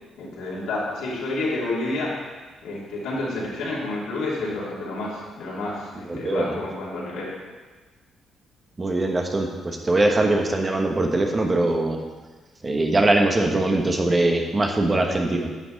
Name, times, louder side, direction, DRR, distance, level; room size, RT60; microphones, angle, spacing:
voice 1, 0.2-2.1 2.6-7.3, left 2 dB, 90° left, -6 dB, 2.8 m, -29 dB
voice 2, 6.0-6.6 8.8-12.0 12.6-15.5, right 2 dB, 25° right, 2 dB, 1.2 m, -22 dB
10.5 x 6.0 x 4.0 m, 1.3 s
cardioid pair, 90°, 0 cm